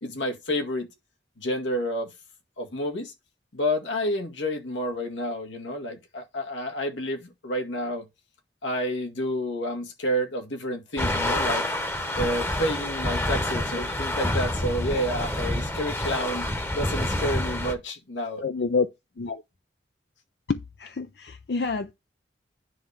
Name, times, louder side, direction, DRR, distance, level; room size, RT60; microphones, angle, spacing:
voice 1, 0.0-0.9 1.4-2.1 2.6-3.1 3.5-8.1 8.6-11.6 12.2-16.5 16.7-18.4, equal, 90° left, 2.0 m, -29 dB
sound 1, 11.0-17.7, left 1 dB, 15° left, 0.9 m, -28 dB
voice 2, 18.4-18.9 19.2-19.4 20.5-21.9, left 4 dB, 60° left, 0.5 m, -28 dB
10.0 x 3.5 x 6.6 m
head